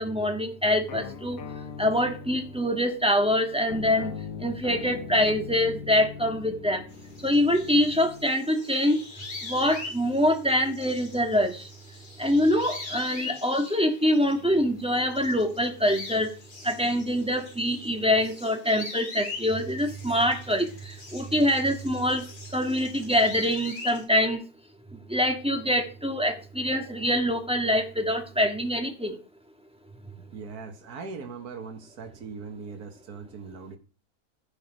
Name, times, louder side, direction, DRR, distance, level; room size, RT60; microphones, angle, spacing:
voice 1, 0.0-1.4 1.8-4.1 4.4-6.8 7.2-9.0 9.4-11.7 12.2-16.3 16.6-22.2 22.5-24.4 25.1-29.2, equal, 5° right, 1.7 m, -25 dB
sound 1, 0.9-8.3, left 7 dB, 65° left, 1.3 m, -41 dB
sound 2, 6.9-14.6 14.9-24.0, left 3 dB, 85° left, 3.4 m, -42 dB
voice 2, 30.3-33.8, right 5 dB, 75° right, 2.0 m, -40 dB
15.5 x 6.1 x 5.1 m
omnidirectional pair, 1.6 m